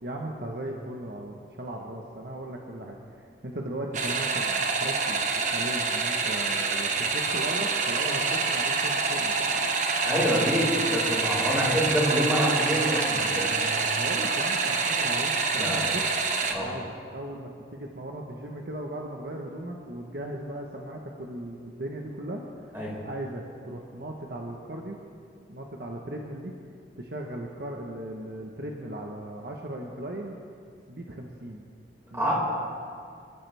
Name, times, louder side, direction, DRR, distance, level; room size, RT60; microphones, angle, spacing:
voice 1, 0.0-9.5 13.4-16.0 16.6-22.4 23.0-25.0 25.5-26.5 27.0-30.3 30.9-31.6 32.1-32.3, right 1 dB, 60° right, 0 dB, 1.2 m, -37 dB
sound 1, 3.9-16.5, right 4 dB, 45° right, 1.1 m, -26 dB
voice 2, 10.0-13.5 15.6-15.9 16.5-16.7 22.7-22.9 32.1-32.3, equal, 15° right, -6 dB, 5.1 m, -26 dB
26.5 x 13.5 x 3.5 m, 2.3 s
head